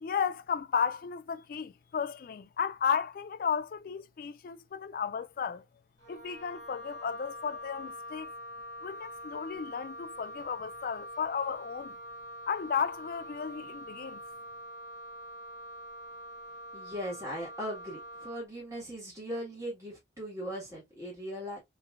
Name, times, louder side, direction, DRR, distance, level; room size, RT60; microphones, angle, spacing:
voice 1, 0.0-5.6 6.1-8.3 8.8-12.0 12.5-14.2, left 7 dB, 50° left, 0.3 m, -34 dB
Wind instrument woodwind instrument, 6.0-18.5, equal, 75° right, 2.6 m, -45 dB
voice 2, 16.7-21.6, equal, 15° right, 1.7 m, -39 dB
3.2 x 3.1 x 2.4 m
head